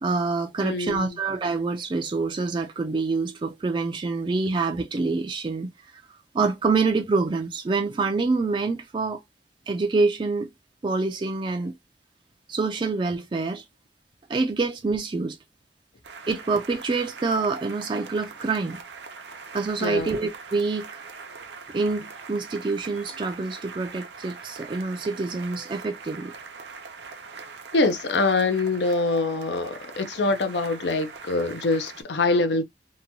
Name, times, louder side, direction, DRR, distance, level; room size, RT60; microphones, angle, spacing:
voice 1, 0.0-5.7 6.3-9.2 9.7-10.5 10.8-11.7 12.5-13.6 14.3-15.4 16.3-18.8 19.5-21.0 21.7-26.3, right 3 dB, 30° right, 0.3 m, -26 dB
voice 2, 0.6-1.2 19.8-20.1 27.7-32.6, left 3 dB, 70° left, 0.5 m, -24 dB
sound 1, 16.0-32.0, right 5 dB, 75° right, 0.6 m, -42 dB
2.9 x 2.2 x 2.6 m
head